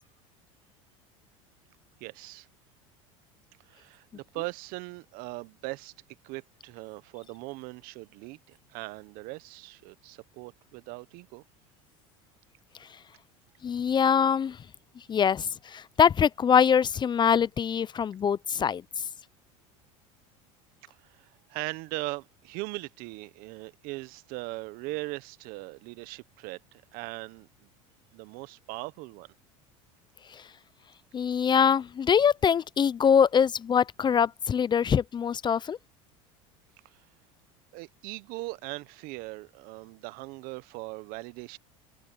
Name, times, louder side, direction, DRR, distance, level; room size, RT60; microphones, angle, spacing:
voice 1, 2.0-2.5 3.7-5.9 6.2-11.4 21.2-27.5 28.1-29.3 37.7-41.6, right 23 dB, 65° right, 1.2 m, -39 dB
voice 2, 13.6-14.6 15.1-18.8 30.3-30.4 31.1-35.8, left 7 dB, 25° left, 0.6 m, -23 dB
hypercardioid pair, 95°, 16 cm